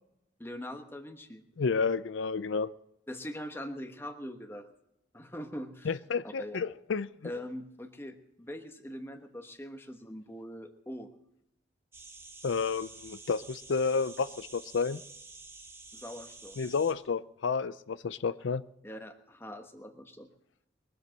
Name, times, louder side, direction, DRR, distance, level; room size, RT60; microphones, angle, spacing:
voice 1, 0.4-1.4 3.1-4.7 5.1-6.6 7.2-11.1 15.9-16.6 18.8-20.3, equal, 10° left, 6 dB, 1.2 m, -42 dB
voice 2, 1.6-2.7 5.9-7.1 12.4-15.0 16.6-18.6, left 5 dB, 75° left, 16 dB, 0.5 m, -30 dB
sound 1, 11.9-16.9, right 3 dB, 10° right, 1.3 m, -50 dB
22.0 x 8.0 x 7.6 m, 0.82 s
head